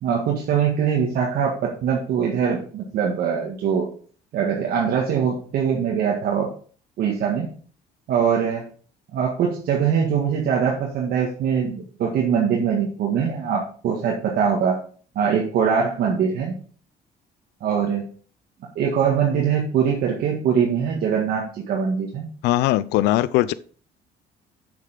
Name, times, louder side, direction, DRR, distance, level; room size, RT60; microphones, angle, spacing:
voice 1, 0.0-3.9 4.3-6.5 7.0-7.5 8.1-8.6 9.1-14.8 15.2-16.6 17.6-18.0 18.8-22.3, right 7 dB, 65° right, 1.8 m, -22 dB
voice 2, 22.4-23.5, left 15 dB, 85° left, 0.5 m, -20 dB
6.9 x 6.7 x 5.1 m
cardioid pair, 110°, 17 cm